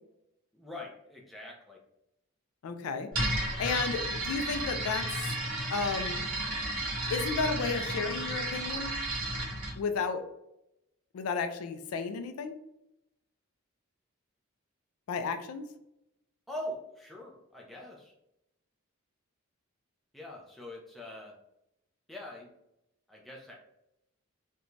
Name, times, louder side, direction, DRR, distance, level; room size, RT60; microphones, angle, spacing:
voice 1, 0.5-1.8 16.5-18.1 20.1-21.3 22.1-22.5 23.1-23.6, left 1 dB, ahead, -3 dB, 0.4 m, -43 dB
voice 2, 2.6-3.1 3.6-5.1 5.7-6.2 7.1-8.9 9.8-10.2 11.1-12.5 15.1-15.7, left 5 dB, 85° left, 8 dB, 0.3 m, -32 dB
sound 1, 3.1-9.8, right 1 dB, 40° right, 0.9 m, -33 dB
2.5 x 2.2 x 3.0 m, 0.84 s
head